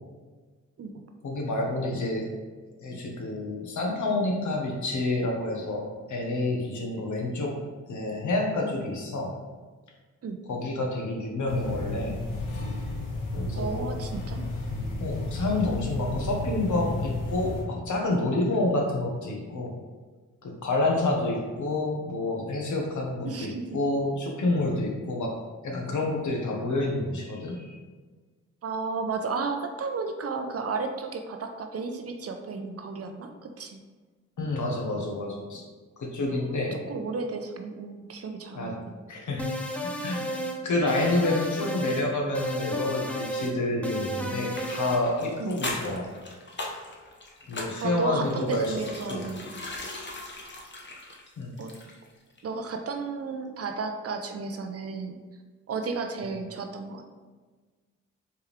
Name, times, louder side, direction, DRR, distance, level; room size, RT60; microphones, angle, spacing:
voice 1, 1.2-2.2 2.8-5.8 6.1-7.6 7.8-9.3 10.5-12.2 13.3-13.9 15.0-19.7 20.4-25.4 25.6-27.7 34.4-35.6 36.0-36.9 38.5-38.7 39.1-39.5 39.8-40.2 40.6-46.0 47.5-48.8 49.1-49.3 51.4-51.5, left 2 dB, 65° left, 0 dB, 1.2 m, -28 dB
sound 1, 11.5-17.6, left 2 dB, 85° left, 0.9 m, -32 dB
voice 2, 13.5-14.5 23.2-23.7 28.6-33.8 36.3-39.0 45.4-45.6 47.8-49.5 51.6-51.7 52.4-55.2 55.7-57.1, right 4 dB, 50° right, 5 dB, 0.6 m, -33 dB
sound 2, 39.4-40.6 40.9-42.1 42.3-43.5 43.8-45.0, equal, 5° left, 0.6 m, -33 dB
sound 3, 44.5-52.1 52.4-52.5, left 2 dB, 35° left, 1.0 m, -39 dB
4.6 x 3.5 x 3.2 m, 1.4 s
supercardioid pair, 55°, 32 cm